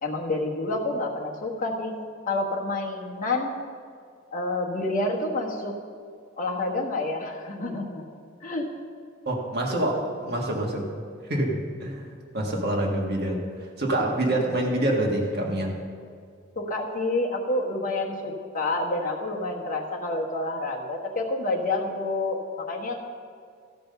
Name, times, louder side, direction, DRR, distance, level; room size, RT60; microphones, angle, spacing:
voice 1, 0.0-2.0 2.3-3.6 4.3-5.8 6.4-8.0 8.4-8.7 16.5-23.0, left 2 dB, 45° left, -1 dB, 1.3 m, -28 dB
voice 2, 9.2-10.9 11.2-13.4 13.8-15.8, right 1 dB, 55° right, -1 dB, 1.7 m, -26 dB
13.5 x 5.3 x 6.7 m, 2.2 s
head